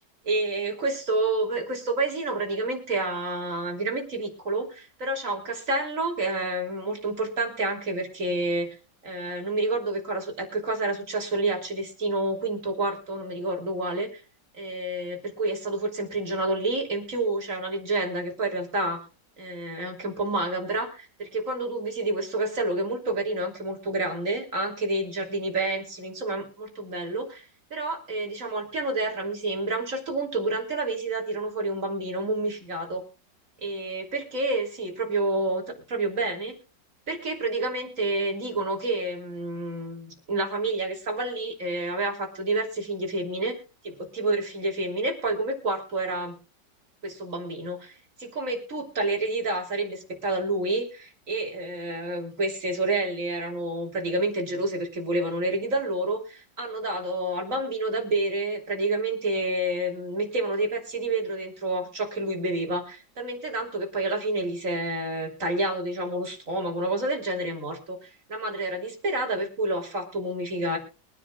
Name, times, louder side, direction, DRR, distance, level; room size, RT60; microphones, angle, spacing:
voice 1, 0.2-8.7 9.0-14.2 14.6-19.0 19.4-33.0 33.6-35.6 35.9-36.5 37.1-43.6 43.8-46.3 47.0-47.9 48.2-70.8, right 2 dB, 45° right, 2 dB, 3.4 m, -29 dB
23.5 x 10.0 x 2.4 m, 0.33 s
omnidirectional pair, 1.9 m